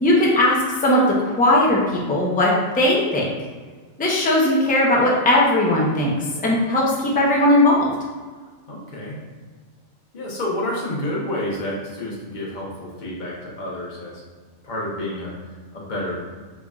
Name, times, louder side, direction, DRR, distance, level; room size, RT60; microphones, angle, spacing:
voice 1, 0.0-3.3 4.0-7.9, left 1 dB, 15° left, -4 dB, 0.3 m, -18 dB
voice 2, 8.7-9.2 10.1-14.2 14.6-16.2, left 1 dB, 40° left, -4 dB, 1.0 m, -29 dB
3.8 x 3.4 x 2.4 m, 1.5 s
omnidirectional pair, 1.3 m